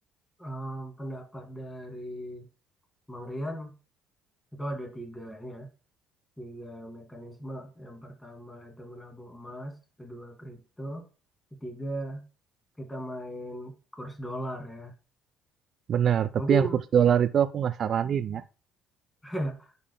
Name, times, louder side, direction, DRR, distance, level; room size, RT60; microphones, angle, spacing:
voice 1, 0.4-2.5 3.1-3.7 4.5-5.7 6.4-11.1 11.6-12.2 12.8-14.9 16.4-16.8 19.2-19.7, equal, 10° left, 2.3 m, -37 dB
voice 2, 15.9-16.7 16.9-18.4, right 9 dB, 50° right, 0.4 m, -23 dB
9.9 x 5.4 x 2.2 m
hypercardioid pair, 60°, 0 cm